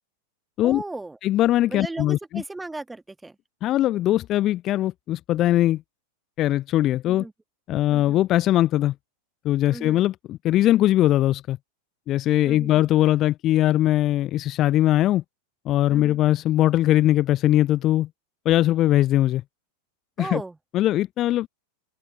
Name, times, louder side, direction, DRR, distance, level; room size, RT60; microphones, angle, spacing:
voice 1, 0.6-1.2 1.7-3.3 7.1-7.3 7.9-8.2 9.7-10.0 12.5-12.8 15.9-16.2 20.2-20.6, right 2 dB, 5° right, 1.4 m, -36 dB
voice 2, 1.2-2.4 3.6-5.8 6.4-7.2 7.7-8.9 9.4-11.6 12.1-15.2 15.7-18.1 18.5-19.4 20.2-20.4 20.7-21.5, left 14 dB, 35° left, 0.6 m, -21 dB
open air
figure-of-eight pair, 90°, 0 cm